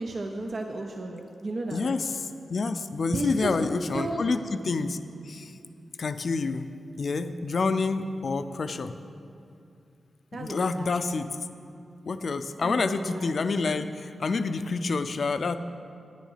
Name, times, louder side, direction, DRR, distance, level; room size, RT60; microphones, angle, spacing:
voice 1, 0.0-1.9 3.1-3.5 3.9-4.2 10.3-11.0 12.6-13.3, right 2 dB, 60° right, 2 dB, 0.6 m, -34 dB
voice 2, 1.7-5.0 5.2-5.6 6.0-8.9 10.3-11.4 12.1-15.6, left 4 dB, 65° left, 11 dB, 0.4 m, -28 dB
8.8 x 7.2 x 5.6 m, 2.6 s
cardioid pair, 50°, 0 cm